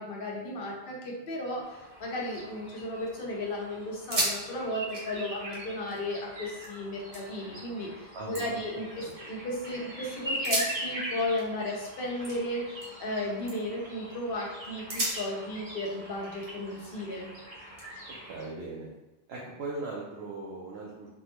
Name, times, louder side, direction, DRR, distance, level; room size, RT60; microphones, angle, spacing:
voice 1, 0.0-17.3, left 1 dB, 65° left, -3 dB, 0.9 m, -34 dB
sound 1, 1.6-18.5, right 1 dB, 40° right, 0.7 m, -42 dB
sound 2, 2.3-3.1 3.5-3.6 3.9-4.4 4.7-6.7 7.1-7.6 8.1-9.6 10.3-13.1 13.4-13.8 14.3-14.4 14.9-17.1 17.8-18.9, right 1 dB, 60° right, 1.1 m, -37 dB
voice 2, 8.1-8.5 9.0-9.1 18.2-18.9 19.3-21.1, right 3 dB, 80° right, -5 dB, 0.8 m, -39 dB
3.5 x 2.1 x 2.9 m, 1.0 s
omnidirectional pair, 1.1 m